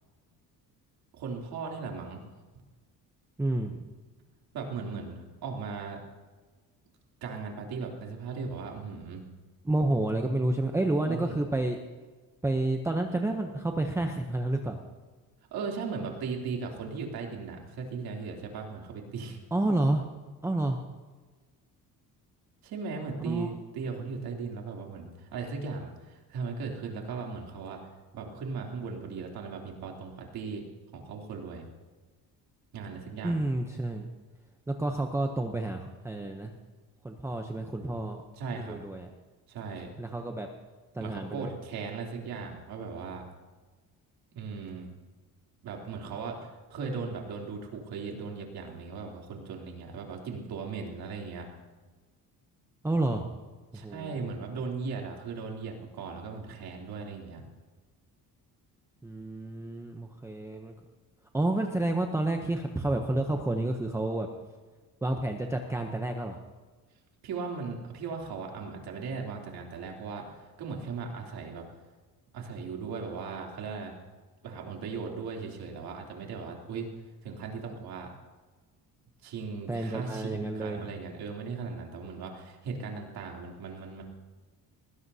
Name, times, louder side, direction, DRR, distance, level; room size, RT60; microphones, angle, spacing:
voice 1, 1.1-2.2 4.5-6.0 7.2-9.2 11.0-11.3 15.5-19.4 22.6-27.8 28.1-30.6 30.9-31.7 32.7-33.4 38.4-38.8 39.5-39.9 41.0-43.3 44.3-44.9 45.6-51.5 53.7-57.4 67.2-70.3 70.6-71.6 72.3-73.9 74.4-76.9 77.2-78.1 79.2-84.0, right 5 dB, 75° right, 0 dB, 3.2 m, -37 dB
voice 2, 3.4-3.9 9.6-11.8 12.4-14.8 19.5-20.1 20.4-20.8 23.2-23.5 33.2-34.1 34.7-36.5 37.0-38.2 38.6-39.1 40.0-40.5 40.9-41.5 52.8-53.2 53.7-54.3 59.0-60.7 61.3-64.3 65.0-66.4 79.7-80.8, right 2 dB, 5° right, 3 dB, 0.7 m, -30 dB
20.0 x 17.0 x 2.8 m, 1.3 s
cardioid pair, 170°, 37 cm